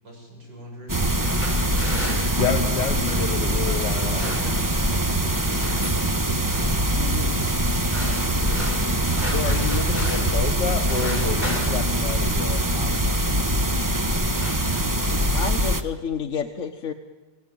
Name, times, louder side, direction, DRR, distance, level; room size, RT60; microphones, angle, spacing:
voice 1, 0.0-0.9 2.5-6.2 6.9-9.1, right 1 dB, 75° right, 0 dB, 7.7 m, -42 dB
sound 1, 0.9-15.8, right 1 dB, 15° right, 0.7 m, -23 dB
sound 2, 1.0-3.2 3.9-4.9 5.1-6.1 6.5-6.9 7.6-10.4 10.7-12.8 13.6-13.8 14.1-15.2, left 1 dB, 20° left, 5.2 m, -36 dB
voice 2, 2.4-4.3 9.3-12.9, left 6 dB, 65° left, 8 dB, 1.9 m, -29 dB
voice 3, 7.0-7.4 15.3-16.9, left 6 dB, 45° left, 4 dB, 1.4 m, -30 dB
29.5 x 18.0 x 9.2 m, 1.3 s
omnidirectional pair, 2.0 m